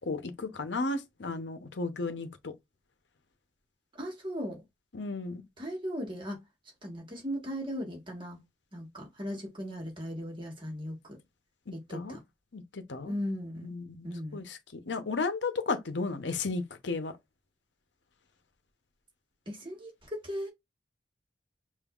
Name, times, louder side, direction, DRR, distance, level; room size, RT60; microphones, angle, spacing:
voice 1, 0.0-2.5 4.9-5.4 11.9-12.2 12.5-13.1 13.6-17.1, left 3 dB, 85° left, 0.8 m, -34 dB
voice 2, 4.0-4.6 5.6-6.4 6.8-8.4 8.7-11.0 11.7-12.2 13.1-13.7 14.0-14.4 19.5-19.9 20.2-20.5, equal, 30° right, 1.5 m, -37 dB
5.3 x 2.6 x 2.4 m
head